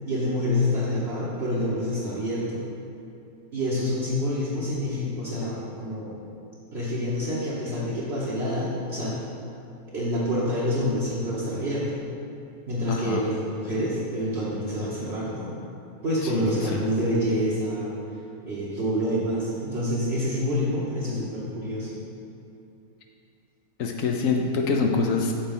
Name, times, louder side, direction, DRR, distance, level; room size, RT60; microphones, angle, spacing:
voice 1, 0.1-2.7 3.5-6.2 6.7-9.2 9.9-12.0 12.7-15.6 16.0-18.0 18.4-22.0, equal, 50° right, -9 dB, 1.2 m, -27 dB
voice 2, 12.9-13.2 16.3-16.4 16.7-16.8 23.8-25.3, left 4 dB, 70° left, 2 dB, 0.9 m, -25 dB
7.3 x 4.1 x 5.4 m, 2.7 s
omnidirectional pair, 1.6 m